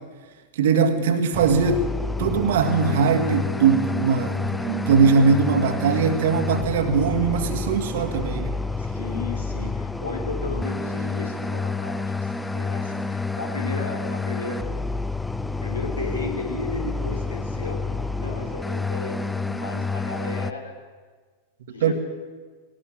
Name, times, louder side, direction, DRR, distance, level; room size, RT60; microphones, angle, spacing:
voice 1, 0.6-1.9 2.2-8.6 21.8-21.9, right 5 dB, 55° right, 7 dB, 2.0 m, -20 dB
sound 1, 1.3-20.5, left 3 dB, 5° left, 0.6 m, -29 dB
voice 2, 8.8-14.7 15.6-17.8 18.1-20.8 21.7-21.9, left 3 dB, 75° left, 2 dB, 3.9 m, -34 dB
19.5 x 18.5 x 7.7 m, 1.4 s
figure-of-eight pair, 90°, 0 cm